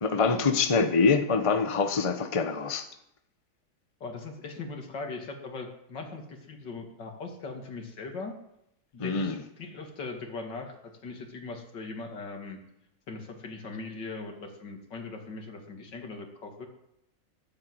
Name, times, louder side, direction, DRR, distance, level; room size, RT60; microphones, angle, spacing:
voice 1, 0.0-2.9 9.0-9.4, left 4 dB, 20° left, 1.0 m, -25 dB
voice 2, 4.0-8.4 8.9-12.6 13.1-16.7, left 3 dB, 75° left, 2.9 m, -40 dB
13.5 x 12.0 x 7.9 m
omnidirectional pair, 1.9 m